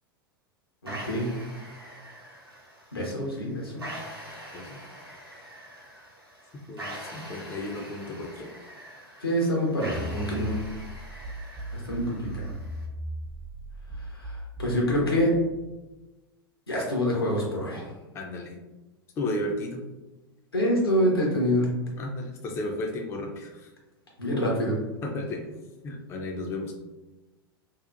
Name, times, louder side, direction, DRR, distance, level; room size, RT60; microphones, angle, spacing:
voice 1, 0.8-1.3 2.9-3.8 9.2-10.6 11.9-12.5 14.1-15.3 16.7-17.8 20.5-21.7 24.2-24.7, equal, 80° left, -3 dB, 0.8 m, -26 dB
sound 1, 0.9-12.8, equal, 85° right, 0.7 m, -44 dB
voice 2, 6.7-8.5 18.1-18.6 19.2-19.9 22.0-23.7 25.0-25.5 25.8-26.7, left 1 dB, 20° left, 2 dB, 0.3 m, -33 dB
sound 2, 9.9-15.4, equal, 50° right, 0.6 m, -37 dB
2.8 x 2.1 x 2.4 m, 1.1 s
figure-of-eight pair, 85°, 12 cm